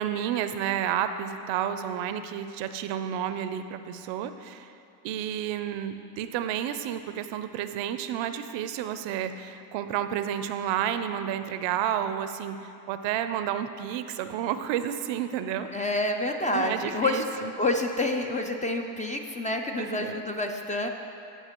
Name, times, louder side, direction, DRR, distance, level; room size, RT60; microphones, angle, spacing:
voice 1, 0.0-4.7 5.0-15.7 16.5-17.5 19.8-20.1, right 10 dB, 65° right, 10 dB, 0.6 m, -31 dB
voice 2, 15.7-20.9, left 2 dB, 15° left, 3 dB, 0.4 m, -28 dB
13.5 x 5.6 x 2.9 m, 2.6 s
supercardioid pair, 80°, 48 cm